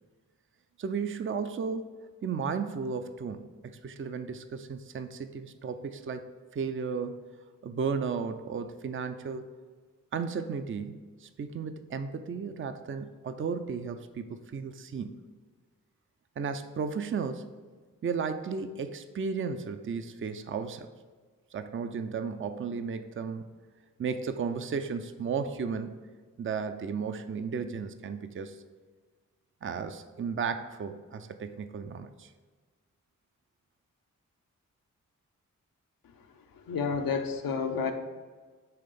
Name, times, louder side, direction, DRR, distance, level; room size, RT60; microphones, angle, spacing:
voice 1, 0.8-1.9 2.2-7.2 7.6-9.5 10.1-15.2 16.4-17.5 18.0-20.9 21.5-23.5 24.0-26.0 26.4-28.6 29.6-32.3, right 5 dB, 40° right, 9 dB, 0.4 m, -34 dB
voice 2, 36.7-37.9, left 5 dB, 85° left, 5 dB, 0.7 m, -30 dB
5.7 x 3.3 x 5.2 m, 1.4 s
cardioid pair, 45°, 34 cm